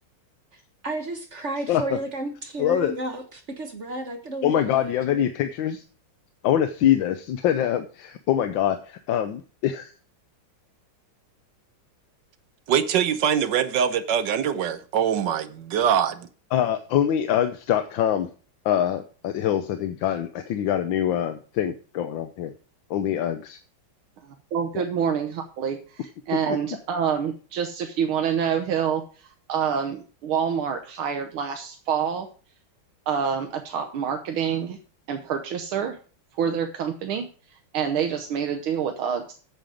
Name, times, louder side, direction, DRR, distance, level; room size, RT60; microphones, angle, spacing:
voice 1, 0.8-5.2, right 2 dB, 40° right, 1.2 m, -32 dB
voice 2, 2.6-2.9 4.4-5.8 6.4-9.9 16.5-18.3 18.6-22.5 22.9-23.6 24.7-24.8, left 10 dB, 70° left, 1.4 m, -24 dB
voice 3, 12.7-16.3, right 8 dB, 65° right, 1.3 m, -23 dB
voice 4, 24.2-32.3 33.1-34.8 35.1-36.0 36.4-37.3 37.7-39.3, right 7 dB, 80° right, 1.8 m, -27 dB
9.1 x 7.4 x 4.9 m
omnidirectional pair, 2.3 m